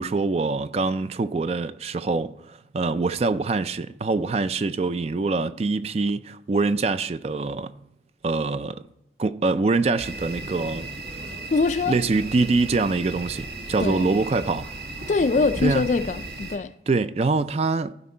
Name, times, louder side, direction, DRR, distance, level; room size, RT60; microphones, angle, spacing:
voice 1, 0.0-7.7 8.2-8.8 9.2-10.9 11.9-14.7 15.6-15.8 16.9-17.9, right 3 dB, 35° right, 0.3 m, -24 dB
sound 1, 10.0-16.6, right 2 dB, 70° right, 1.5 m, -36 dB
voice 2, 11.5-12.0 13.8-14.1 15.1-16.7, left 4 dB, 40° left, 0.3 m, -23 dB
15.0 x 5.2 x 4.3 m
head